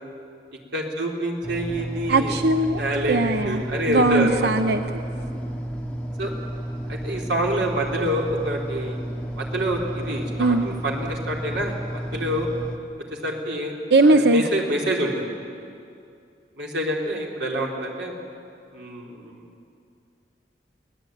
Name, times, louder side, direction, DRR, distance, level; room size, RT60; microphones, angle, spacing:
voice 1, 0.7-2.3 2.8-4.5 5.3-5.4 6.2-6.3 6.9-9.0 9.4-12.5 13.2-15.3 16.6-18.1 18.7-19.4, right 1 dB, 90° right, -1 dB, 4.1 m, -27 dB
sound 1, 1.4-12.8, right 1 dB, 5° left, 1.7 m, -32 dB
voice 2, 2.1-2.8 3.1-4.8 10.4-10.7 13.9-14.4, right 2 dB, 65° right, 8 dB, 0.8 m, -19 dB
24.0 x 18.5 x 9.3 m, 2.5 s
head